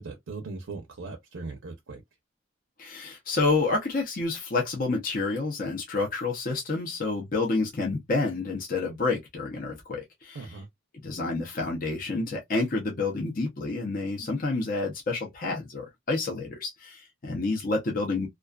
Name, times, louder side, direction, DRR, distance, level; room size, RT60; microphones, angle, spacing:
voice 1, 0.0-2.0 10.3-10.7, right 3 dB, 85° right, 0.6 m, -39 dB
voice 2, 2.8-10.5 11.0-18.3, left 3 dB, 45° left, 0.6 m, -29 dB
2.4 x 2.3 x 2.2 m
head